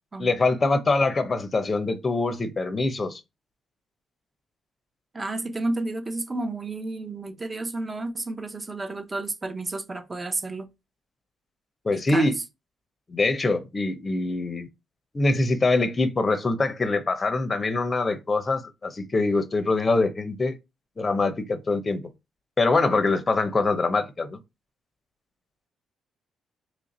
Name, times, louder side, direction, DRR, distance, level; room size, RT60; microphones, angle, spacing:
voice 1, 0.2-3.2 11.8-12.4 13.1-14.7 15.1-20.6 21.0-22.0 22.6-24.4, left 3 dB, 30° left, 0.6 m, -24 dB
voice 2, 5.1-10.7 11.9-12.3, right 2 dB, 25° right, 0.6 m, -31 dB
3.1 x 2.5 x 4.1 m
cardioid pair, 90°, 0 cm